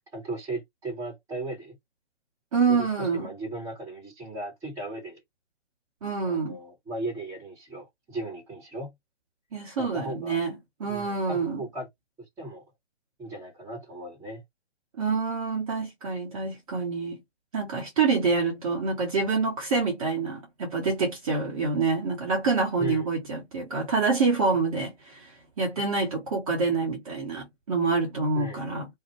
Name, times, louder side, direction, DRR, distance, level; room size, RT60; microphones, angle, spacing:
voice 1, 0.1-1.7 2.7-5.2 6.2-8.9 9.8-10.4 10.9-11.9 12.4-12.6 13.2-14.4 22.8-23.1 28.3-28.6, right 1 dB, 10° right, 1.2 m, -37 dB
voice 2, 2.5-3.3 6.0-6.6 9.5-10.5 10.8-11.6 15.0-17.2 17.5-28.9, right 4 dB, 30° right, 0.8 m, -27 dB
2.6 x 2.1 x 3.0 m
figure-of-eight pair, 135°, 34 cm